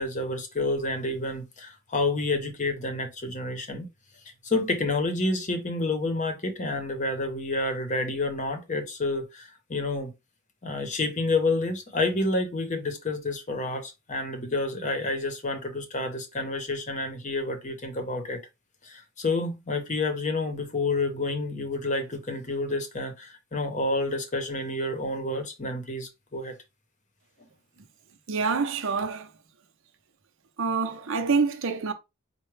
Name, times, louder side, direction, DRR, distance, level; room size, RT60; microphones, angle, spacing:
voice 1, 0.0-3.9 4.4-10.1 10.6-18.4 18.8-26.5, left 2 dB, 35° left, 0.8 m, -29 dB
voice 2, 28.3-29.3 30.6-31.9, right 4 dB, 60° right, 0.7 m, -26 dB
4.6 x 2.2 x 3.2 m
head